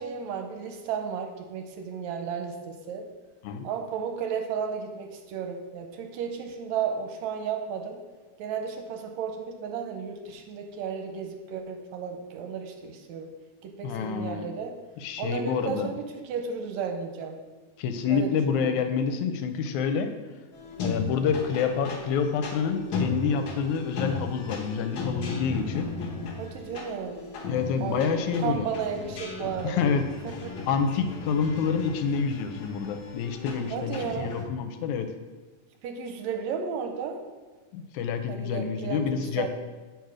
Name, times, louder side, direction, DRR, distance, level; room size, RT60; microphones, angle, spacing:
voice 1, 0.0-3.1 3.6-8.0 8.4-13.3 13.6-14.8 15.2-17.4 18.1-18.8 26.4-27.2 27.8-29.9 30.2-30.6 33.7-34.3 35.8-37.2 38.3-39.5, right 6 dB, 75° right, 4 dB, 1.9 m, -33 dB
voice 2, 13.8-14.5 15.0-15.9 17.8-20.1 20.8-25.9 27.5-28.7 29.6-30.0 30.6-35.1 37.7-39.5, left 6 dB, 80° left, 8 dB, 2.0 m, -28 dB
sound 1, 20.5-34.5, left 3 dB, 60° left, 1.5 m, -36 dB
8.1 x 4.3 x 4.8 m, 1.3 s
omnidirectional pair, 3.4 m